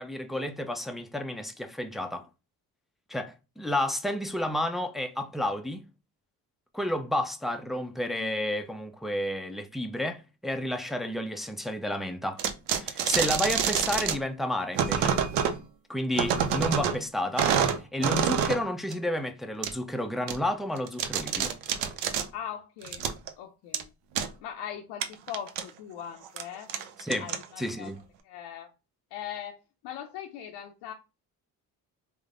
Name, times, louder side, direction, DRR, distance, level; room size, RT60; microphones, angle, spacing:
voice 1, 0.0-2.3 3.1-5.9 6.7-12.4 12.7-15.2 15.9-17.5 17.9-21.5 27.0-27.3 27.6-28.0, left 1 dB, ahead, 0.3 m, -31 dB
sound 1, 12.4-14.2 14.7-15.6 16.1-17.0 17.4-18.6 18.9-19.0 19.6-19.7 20.3-20.4 20.8-22.3 22.8-23.3 23.7-23.8 24.2-24.3 25.0-25.6 26.2-26.4 26.7-27.7, right 8 dB, 80° right, 0.5 m, -27 dB
voice 2, 22.3-23.0 23.4-23.9 24.4-26.7 27.2-27.9 28.2-28.7 29.1-30.9, left 9 dB, 75° left, 0.5 m, -40 dB
3.3 x 2.0 x 2.4 m
supercardioid pair, 60°, 43 cm